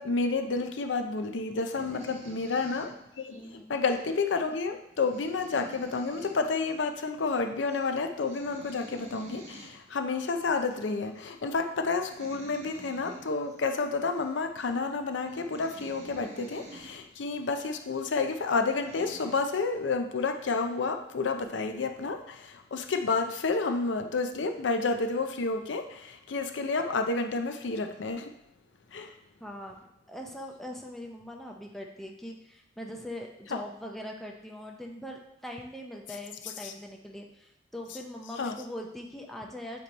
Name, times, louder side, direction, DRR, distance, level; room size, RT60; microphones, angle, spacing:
voice 1, 0.0-28.3 28.9-29.1 33.5-33.6 36.6-36.7 38.4-38.5, left 4 dB, 85° left, 6 dB, 0.6 m, -30 dB
sound 1, 1.6-3.4 3.8-4.1 4.5-4.6 4.9-6.4 6.7-6.8 7.1-7.4 7.7-7.9 8.2-9.7 10.5-10.7 11.2-11.4 11.9-13.6 14.2-14.3 14.9-15.0 15.3-16.9 17.5-17.6 18.3-18.4 18.7-19.4, right 2 dB, 40° right, 0.9 m, -49 dB
voice 2, 1.8-2.2 3.3-3.7 29.4-39.8, left 1 dB, ahead, 0 dB, 0.6 m, -42 dB
8.2 x 3.0 x 4.1 m, 0.84 s
head